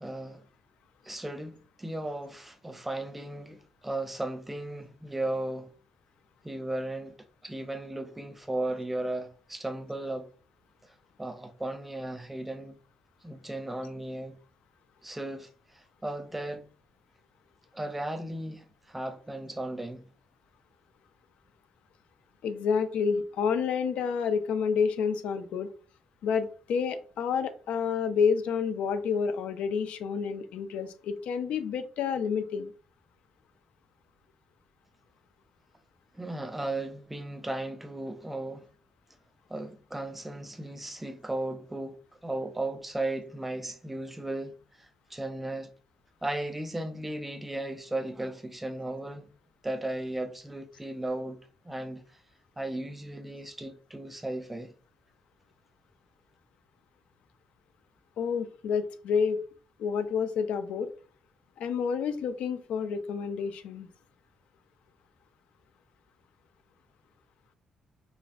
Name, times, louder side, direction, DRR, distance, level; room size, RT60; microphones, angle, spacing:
voice 1, 0.0-0.4 1.0-5.7 6.4-7.2 7.4-10.3 11.2-12.8 13.2-14.4 15.0-16.7 17.7-20.0 36.1-38.7 39.5-42.0 42.2-45.7 46.2-49.3 49.6-52.0 52.6-54.7, right 1 dB, 10° right, 0.4 m, -36 dB
voice 2, 22.4-25.7 26.2-32.7 58.2-59.4 59.8-60.9 61.6-63.9, left 6 dB, 80° left, 0.5 m, -29 dB
5.1 x 2.4 x 2.4 m
cardioid pair, 170°, 2 cm